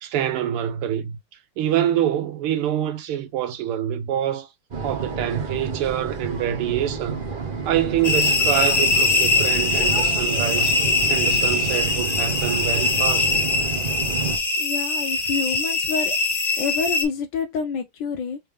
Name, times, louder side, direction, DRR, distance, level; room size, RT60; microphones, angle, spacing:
voice 1, 0.0-1.2 1.6-4.5 4.8-7.2 7.7-10.8 11.1-13.3, right 11 dB, 90° right, 1.7 m, -25 dB
sound 1, 4.7-14.4, right 5 dB, 65° right, 0.5 m, -30 dB
sound 2, 8.0-17.0, left 3 dB, 55° left, 0.3 m, -22 dB
voice 2, 14.6-16.1 16.6-18.4, left 5 dB, 75° left, 1.1 m, -27 dB
3.7 x 3.5 x 3.2 m
omnidirectional pair, 2.4 m